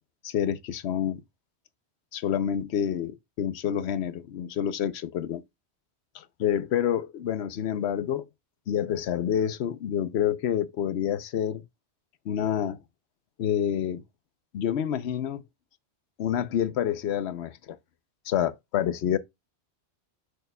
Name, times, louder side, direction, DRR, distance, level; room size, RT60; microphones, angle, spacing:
voice 1, 0.2-1.2 2.1-5.4 6.1-8.2 8.7-11.6 12.3-12.8 13.4-14.0 14.5-15.4 16.2-17.8 18.3-19.2, left 9 dB, 80° left, 0.9 m, -28 dB
6.6 x 6.4 x 2.2 m
omnidirectional pair, 1.1 m